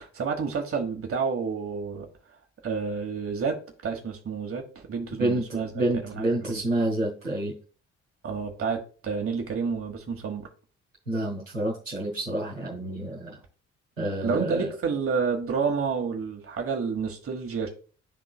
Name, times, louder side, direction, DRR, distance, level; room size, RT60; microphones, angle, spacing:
voice 1, 0.0-2.1 2.6-6.5 8.2-10.5 14.2-17.7, right 5 dB, 35° right, 1.4 m, -30 dB
voice 2, 5.7-7.5 11.1-13.4 14.0-14.7, right 1 dB, 90° right, 1.2 m, -28 dB
11.0 x 3.7 x 2.3 m
figure-of-eight pair, 40°, 38 cm